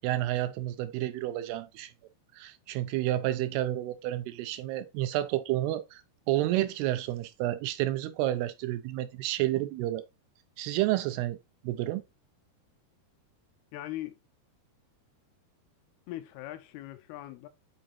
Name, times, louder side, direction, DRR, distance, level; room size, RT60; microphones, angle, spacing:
voice 1, 0.0-1.9 2.4-6.0 6.3-10.0 10.6-11.4 11.6-12.0, right 14 dB, 80° right, 2.6 m, -30 dB
voice 2, 13.7-14.2 16.1-17.5, left 14 dB, 80° left, 2.6 m, -40 dB
9.0 x 5.0 x 2.6 m
omnidirectional pair, 4.7 m